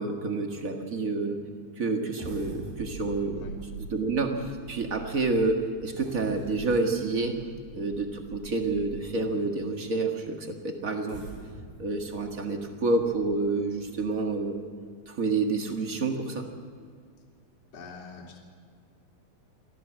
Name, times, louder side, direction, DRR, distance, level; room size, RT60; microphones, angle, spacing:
voice 1, 0.0-1.4 1.8-3.4 3.9-7.4 7.7-11.2 11.8-14.7 15.1-16.5, right 3 dB, 50° right, 4 dB, 1.0 m, -28 dB
sound 1, 2.2-9.3 9.9-10.0 10.9-14.4 14.9-15.0 15.4-15.6, right 4 dB, 70° right, 5.6 m, -44 dB
voice 2, 17.7-18.4, left 4 dB, 45° left, -3 dB, 3.6 m, -44 dB
24.0 x 15.5 x 7.6 m, 2.1 s
omnidirectional pair, 4.2 m